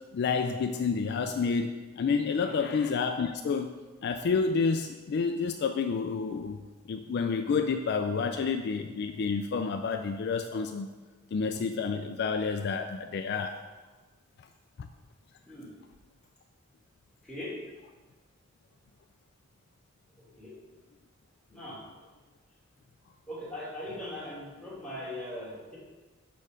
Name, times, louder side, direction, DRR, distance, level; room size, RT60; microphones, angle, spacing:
voice 1, 0.1-3.7 4.0-6.6 6.9-10.9 11.3-13.6 14.8-14.9, left 5 dB, 55° left, 7 dB, 0.3 m, -29 dB
voice 2, 17.2-17.6 20.4-20.5 21.5-21.8 23.3-25.8, left 1 dB, 5° left, -8 dB, 2.3 m, -40 dB
6.2 x 4.5 x 4.9 m, 1.3 s
head